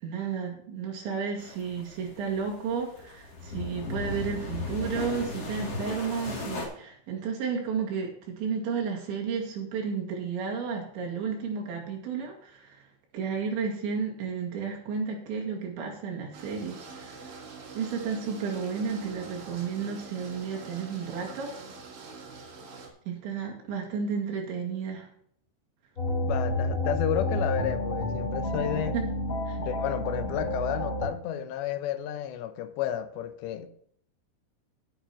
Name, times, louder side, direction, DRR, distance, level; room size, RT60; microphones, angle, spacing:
voice 1, 0.0-12.8 13.1-17.4 17.7-21.5 23.1-25.1 28.9-29.0 29.5-29.6, right 6 dB, 75° right, 4.4 m, -32 dB
sound 1, 1.4-6.7, left 3 dB, 40° left, 3.2 m, -37 dB
sound 2, 16.3-22.9, right 4 dB, 55° right, 3.7 m, -45 dB
sound 3, 26.0-31.1, left 1 dB, 20° left, 4.5 m, -30 dB
voice 2, 26.2-28.9 29.6-33.7, left 11 dB, 75° left, 2.9 m, -31 dB
17.0 x 7.9 x 3.0 m
omnidirectional pair, 5.4 m